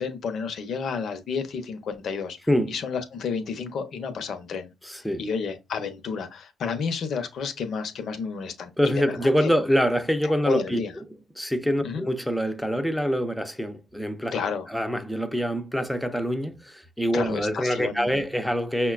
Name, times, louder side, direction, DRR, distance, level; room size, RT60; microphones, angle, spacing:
voice 1, 0.0-2.4 2.7-4.7 5.2-9.5 10.2-10.9 11.8-12.0 14.3-14.7 17.1-18.2, left 5 dB, 60° left, 0.7 m, -31 dB
voice 2, 2.5-2.8 4.8-5.3 8.8-10.8 11.4-14.3 14.7-18.9, equal, ahead, 0.6 m, -25 dB
5.5 x 2.2 x 2.3 m
supercardioid pair, 70°, 0 cm